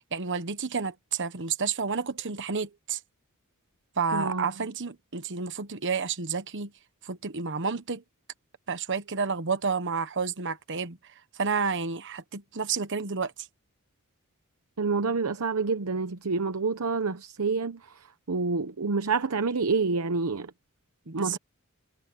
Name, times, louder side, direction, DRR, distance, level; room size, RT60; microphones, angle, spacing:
voice 1, 0.1-3.0 4.0-6.7 7.0-8.0 8.7-11.0 11.3-13.3 21.1-21.4, right 5 dB, 60° right, 1.2 m, -30 dB
voice 2, 4.1-4.5 14.8-17.8 18.3-20.5 21.1-21.4, right 4 dB, 80° right, 0.8 m, -27 dB
head